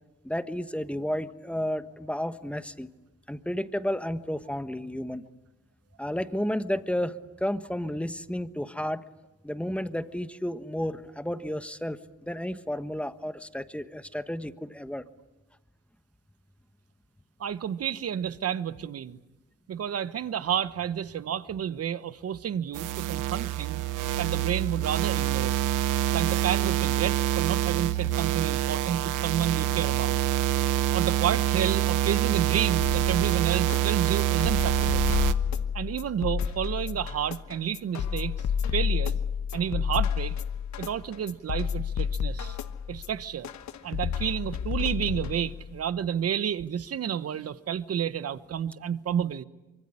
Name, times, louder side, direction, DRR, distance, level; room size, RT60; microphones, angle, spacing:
voice 1, 0.2-2.9 3.3-5.2 6.0-9.0 9.4-15.1, equal, 5° left, 1.3 m, -32 dB
voice 2, 17.4-19.2 19.7-23.8 24.2-25.6 26.1-30.2 30.9-35.0 35.7-38.3 38.7-39.2 39.5-40.4 40.8-42.6 42.9-43.5 43.8-49.4, right 9 dB, 50° right, 1.2 m, -30 dB
sound 1, 22.7-35.3, right 13 dB, 90° right, 1.1 m, -26 dB
sound 2, 32.8-45.8, left 7 dB, 65° left, 1.3 m, -30 dB
25.0 x 24.0 x 9.9 m
cardioid pair, 90°, 30 cm